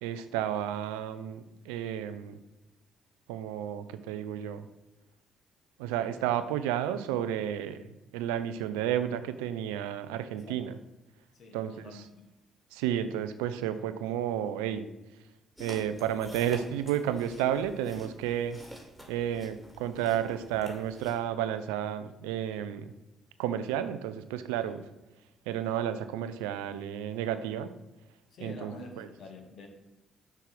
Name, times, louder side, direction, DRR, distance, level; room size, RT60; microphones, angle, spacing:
voice 1, 0.0-2.4 3.3-4.7 5.8-10.8 11.5-12.0 12.7-14.9 15.6-18.6 19.1-22.9 23.4-24.8 25.5-27.7 28.4-29.1, right 10 dB, 80° right, 11 dB, 0.3 m, -32 dB
voice 2, 10.3-10.7 11.3-12.0 24.6-24.9 28.3-29.7, left 3 dB, 60° left, 3 dB, 1.2 m, -47 dB
sound 1, 15.6-21.2, equal, 5° left, 2.1 m, -49 dB
5.9 x 3.3 x 5.8 m, 0.96 s
hypercardioid pair, 45°, 0 cm